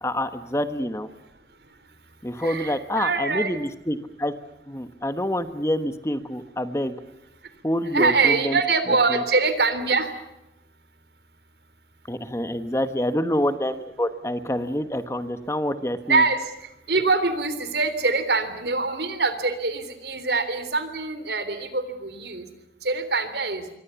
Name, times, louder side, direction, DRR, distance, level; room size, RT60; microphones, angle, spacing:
voice 1, 0.0-1.1 2.2-4.3 4.7-6.9 7.6-8.6 8.9-9.2 12.1-16.2, left 1 dB, 15° left, 10 dB, 1.2 m, -27 dB
voice 2, 2.4-3.6 7.9-10.1 16.1-22.5 22.8-23.6, right 3 dB, 75° right, 11 dB, 3.4 m, -24 dB
27.5 x 23.5 x 7.0 m, 0.90 s
head